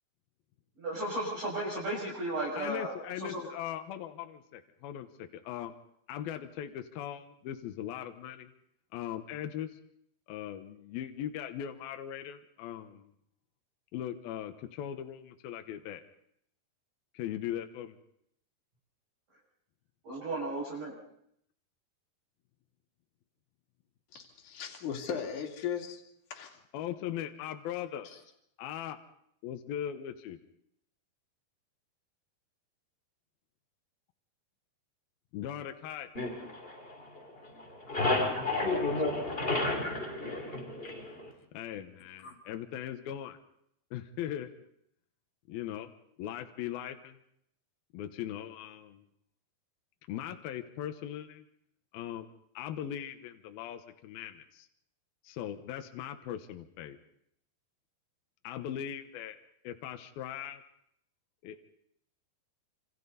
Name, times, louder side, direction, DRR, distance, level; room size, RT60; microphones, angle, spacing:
voice 1, 0.8-3.4 20.0-21.0, right 1 dB, 50° right, -5 dB, 7.8 m, -35 dB
voice 2, 2.6-5.7 6.1-8.5 8.9-9.7 10.3-13.1 13.9-16.0 17.1-18.0 26.7-28.1 28.6-29.0 29.4-30.4 35.3-36.1 41.5-43.4 43.9-44.7 45.5-45.9 46.2-47.2 47.9-49.0 50.1-51.4 51.9-52.3 52.5-54.7 55.2-57.0 58.4-59.4 59.6-60.6 61.4-61.6, left 10 dB, 75° left, 7 dB, 2.8 m, -39 dB
voice 3, 24.4-26.0 26.3-26.6 28.0-28.2 38.2-38.4 39.1-39.8 40.8-41.1 42.2-42.4, left 7 dB, 50° left, 1 dB, 3.8 m, -38 dB
sound 1, 36.1-37.3 37.6-41.3, left 2 dB, 15° left, 3.1 m, -31 dB
28.0 x 27.0 x 4.1 m, 0.72 s
omnidirectional pair, 4.6 m